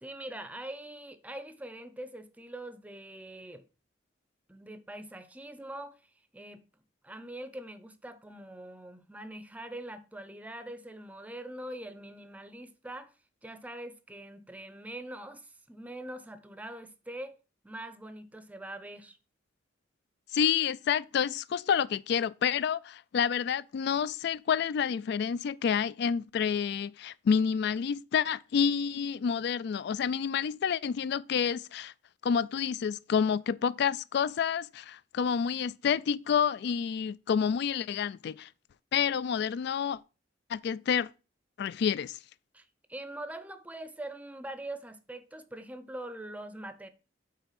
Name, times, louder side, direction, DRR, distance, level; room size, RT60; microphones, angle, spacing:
voice 1, 0.0-3.7 4.5-6.0 6.3-6.6 7.0-13.1 13.4-17.4 17.6-19.2 42.5-46.9, right 1 dB, 10° right, 0.6 m, -43 dB
voice 2, 20.3-31.9 32.2-38.5 38.9-40.0 40.5-41.1 41.6-42.2, left 7 dB, 60° left, 0.3 m, -29 dB
5.7 x 4.4 x 5.8 m
head